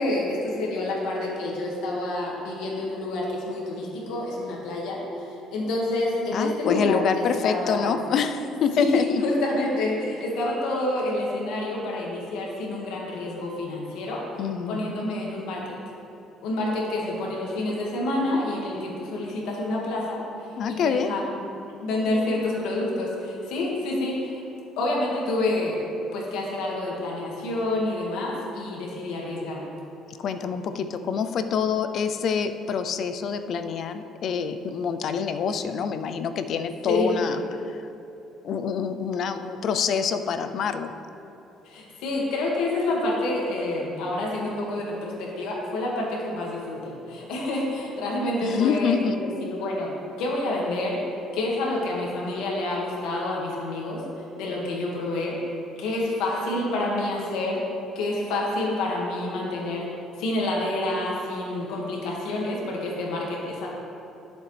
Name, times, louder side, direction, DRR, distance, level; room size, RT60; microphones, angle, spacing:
voice 1, 0.0-7.9 8.8-14.2 14.7-15.7 16.4-21.4 21.8-24.4 24.8-25.8 26.1-29.7 36.9-37.1 41.6-49.9 50.2-51.0 51.3-54.0 54.4-55.4 55.8-57.6 58.0-59.9 60.2-63.7, left 2 dB, 85° left, -3 dB, 2.0 m, -28 dB
voice 2, 6.3-9.2 14.4-14.9 20.6-21.1 30.2-37.4 37.7-37.8 38.4-40.9 48.4-49.2, left 6 dB, 50° left, 9 dB, 0.5 m, -26 dB
11.5 x 7.3 x 3.4 m, 2.8 s
cardioid pair, 140°, 0 cm